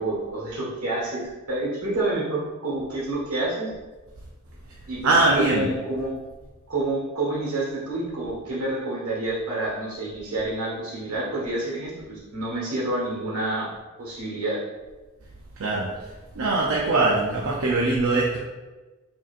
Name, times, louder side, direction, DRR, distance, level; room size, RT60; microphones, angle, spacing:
voice 1, 0.0-3.7 4.9-6.1 6.7-13.7 14.0-14.6, right 2 dB, 85° right, -5 dB, 1.5 m, -28 dB
voice 2, 5.0-5.7 15.6-15.9 16.4-18.4, right 2 dB, 70° right, -3 dB, 0.5 m, -21 dB
4.8 x 2.8 x 2.5 m, 1.2 s
head